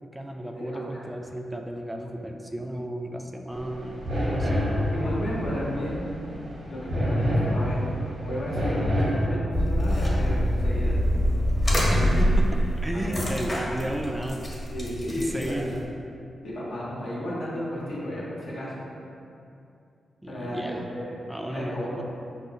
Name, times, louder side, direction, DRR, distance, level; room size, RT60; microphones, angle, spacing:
voice 1, 0.0-4.6 11.9-12.4 12.8-14.4 15.2-15.9 20.2-20.9 21.3-22.0, right 1 dB, 15° right, 2 dB, 0.3 m, -33 dB
voice 2, 0.6-1.0 4.9-6.0 6.7-7.8 8.3-10.9 11.7-12.2 13.1-13.2 14.7-15.6 16.4-18.8 20.3-21.1 21.5-22.0, left 1 dB, 75° left, -7 dB, 0.9 m, -33 dB
sound 1, 3.5-9.3, equal, 80° right, 1.0 m, -27 dB
sound 2, 9.5-15.8, equal, 40° left, 1.0 m, -25 dB
4.9 x 2.0 x 2.7 m, 2.6 s
supercardioid pair, 45°, 0 cm